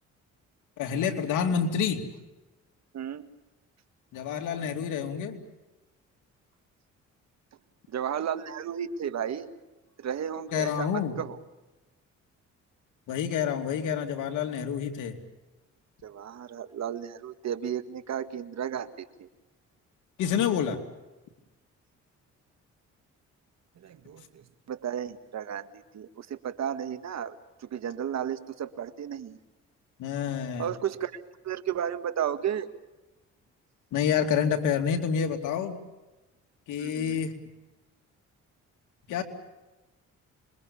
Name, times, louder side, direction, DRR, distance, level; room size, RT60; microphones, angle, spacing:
voice 1, 0.8-2.0 4.1-5.4 10.5-11.2 13.1-15.2 20.2-20.8 30.0-30.7 33.9-35.7 36.7-37.3 39.1-39.2, left 7 dB, 90° left, 5 dB, 3.0 m, -28 dB
voice 2, 2.9-3.3 7.9-9.5 10.0-11.4 16.0-19.3 23.8-29.4 30.6-32.7 36.8-37.2, right 9 dB, 60° right, 10 dB, 1.8 m, -34 dB
26.5 x 22.5 x 7.1 m, 1.1 s
cardioid pair, 90°, 30 cm